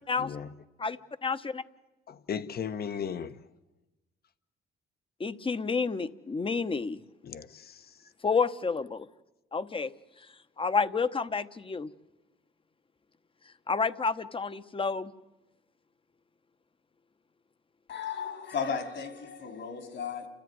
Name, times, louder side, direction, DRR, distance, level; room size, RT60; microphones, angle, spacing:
voice 1, 0.2-0.5 2.1-3.4 7.2-8.1, left 7 dB, 50° left, 1.1 m, -37 dB
voice 2, 1.2-1.6 5.2-7.0 8.2-9.1 9.5-9.9 10.6-11.9 13.7-15.1, left 4 dB, 25° left, 1.0 m, -29 dB
voice 3, 17.9-20.3, left 6 dB, 65° left, 3.7 m, -35 dB
29.5 x 14.0 x 9.5 m
cardioid pair, 90°, 20 cm